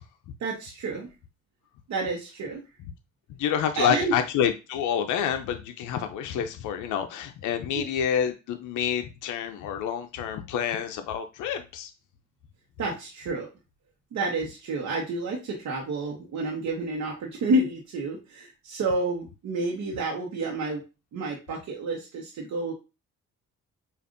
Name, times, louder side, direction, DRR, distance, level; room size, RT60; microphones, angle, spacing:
voice 1, 0.4-1.1 1.9-2.6 3.8-4.2 7.7-7.9 12.8-13.5 14.1-20.8 21.1-22.7, right 2 dB, 65° right, 1.0 m, -29 dB
voice 2, 3.4-11.9, left 8 dB, 80° left, 0.5 m, -28 dB
5.0 x 2.5 x 2.5 m
cardioid pair, 90°, 30 cm